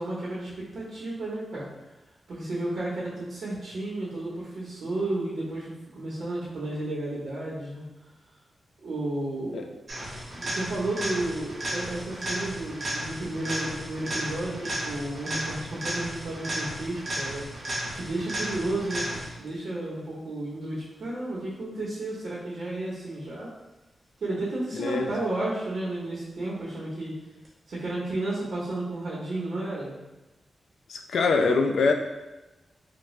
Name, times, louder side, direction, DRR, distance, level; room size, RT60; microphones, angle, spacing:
voice 1, 0.0-1.7 2.3-7.9 8.8-9.7 10.3-17.5 17.9-23.5 24.2-27.1 27.7-29.9, right 2 dB, 60° right, -7 dB, 0.8 m, -32 dB
sound 1, 9.9-19.5 27.5-27.6, right 1 dB, 30° right, 1.0 m, -34 dB
voice 2, 24.8-25.1 30.9-31.9, left 4 dB, 80° left, 4 dB, 0.3 m, -23 dB
3.6 x 2.2 x 3.1 m, 1.1 s
wide cardioid pair, 165°, 0 cm